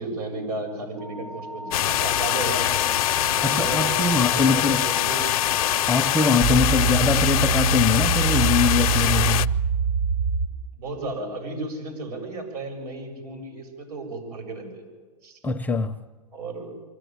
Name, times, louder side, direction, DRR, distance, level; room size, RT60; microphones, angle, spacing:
voice 1, 0.0-2.7 3.2-3.9 4.3-5.3 6.5-6.8 10.7-14.9 15.2-15.4 16.3-16.7, right 2 dB, 75° right, 7.2 m, -34 dB
sound 1, 1.0-10.5, right 4 dB, 60° right, 5.1 m, -27 dB
sound 2, 1.7-9.5, left 14 dB, 60° left, 0.6 m, -23 dB
voice 2, 3.4-4.9 5.9-9.5 15.4-16.0, left 4 dB, 10° left, 0.6 m, -23 dB
23.5 x 15.0 x 9.3 m
hypercardioid pair, 130°, 20 cm